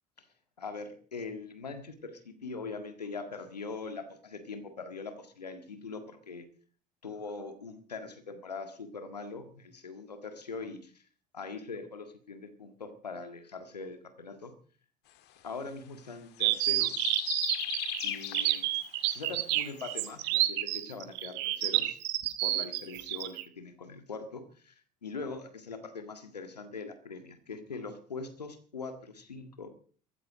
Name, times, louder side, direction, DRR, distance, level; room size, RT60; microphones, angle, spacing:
voice 1, 0.6-6.5 7.0-11.0 11.3-14.5 15.4-17.1 18.0-18.7 19.1-22.0 22.4-29.7, left 4 dB, 90° left, 8 dB, 1.8 m, -42 dB
sound 1, 16.4-20.1, left 12 dB, 55° left, 1.8 m, -37 dB
sound 2, 16.4-23.4, right 16 dB, 60° right, 1.5 m, -29 dB
14.5 x 14.5 x 5.0 m, 0.43 s
figure-of-eight pair, 65°, 20 cm